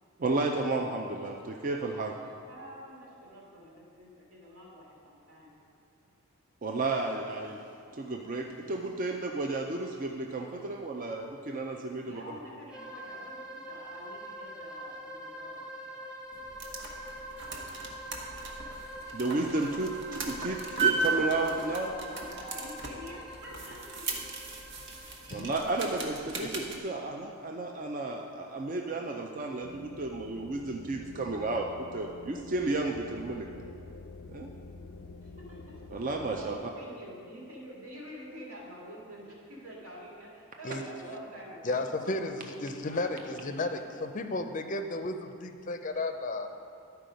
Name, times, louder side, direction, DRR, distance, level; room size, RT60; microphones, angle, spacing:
voice 1, 0.2-2.1 6.6-7.6 7.9-12.4 19.1-21.9 25.3-33.5 34.3-34.5 35.9-36.6, right 2 dB, 40° right, 2 dB, 0.4 m, -32 dB
voice 2, 2.5-5.5 11.7-16.1 16.7-17.0 17.4-18.4 18.8-18.9 21.7-24.1 35.2-42.1 42.8-43.9, equal, 85° right, -5 dB, 2.4 m, -48 dB
sound 1, 12.7-26.3, right 1 dB, 5° right, 0.9 m, -44 dB
sound 2, 16.3-26.8, right 4 dB, 55° right, 1.0 m, -36 dB
sound 3, 29.6-36.5, left 3 dB, 90° left, 0.5 m, -48 dB
voice 3, 41.6-46.5, left 2 dB, 35° left, 7 dB, 0.5 m, -33 dB
12.0 x 4.6 x 5.1 m, 2.5 s
head